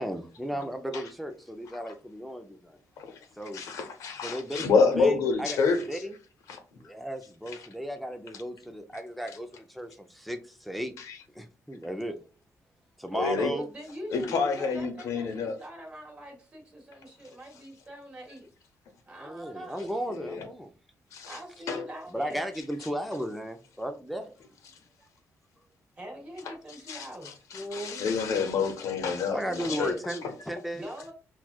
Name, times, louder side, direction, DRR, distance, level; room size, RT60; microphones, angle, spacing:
voice 1, 0.0-2.8 3.4-3.6 4.2-4.7 4.9-5.6 5.9-6.1 6.8-10.9 11.3-12.2 13.0-13.7 19.2-20.7 22.1-24.3 27.5-28.5 29.3-30.9, equal, ahead, 0.4 m, -35 dB
voice 2, 3.5-6.0 6.5-6.6 7.5-7.6 11.0-11.2 13.1-13.5 14.1-15.6 20.1-20.4 21.1-21.4 21.7-21.9 26.4-26.5 26.9-30.3, left 5 dB, 80° left, 0.8 m, -28 dB
voice 3, 13.2-18.5 19.1-19.9 21.3-22.4 26.0-27.4 29.5-30.0 30.7-31.1, right 1 dB, 20° right, 1.3 m, -42 dB
5.9 x 2.3 x 2.3 m
cardioid pair, 175°, 5 cm